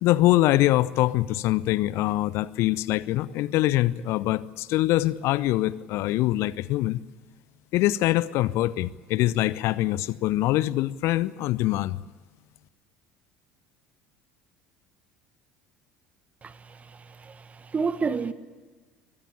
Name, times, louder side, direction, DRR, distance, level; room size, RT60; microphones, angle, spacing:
voice 1, 0.0-7.0 7.7-12.0, left 16 dB, 50° left, 0.7 m, -24 dB
voice 2, 16.4-16.8 17.2-18.3, right 5 dB, 25° right, 1.5 m, -29 dB
24.0 x 20.0 x 8.3 m
figure-of-eight pair, 65°, 6 cm